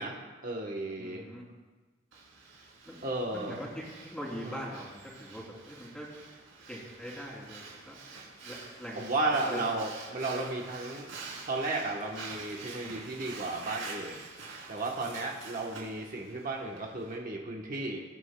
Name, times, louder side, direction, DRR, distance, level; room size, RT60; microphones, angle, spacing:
voice 1, 0.0-1.2 3.0-3.6 4.4-4.6 9.0-11.1 11.5-14.2 14.7-18.0, right 2 dB, 45° right, -1 dB, 1.0 m, -34 dB
voice 2, 1.0-1.4 2.9-3.0 3.3-6.1 6.7-8.0 8.4-9.1 9.4-9.7 12.8-12.9, equal, 5° left, -4 dB, 3.0 m, -42 dB
Breathing, 2.1-17.2, right 4 dB, 80° right, 3.2 m, -47 dB
20.5 x 9.8 x 2.2 m, 1.3 s
head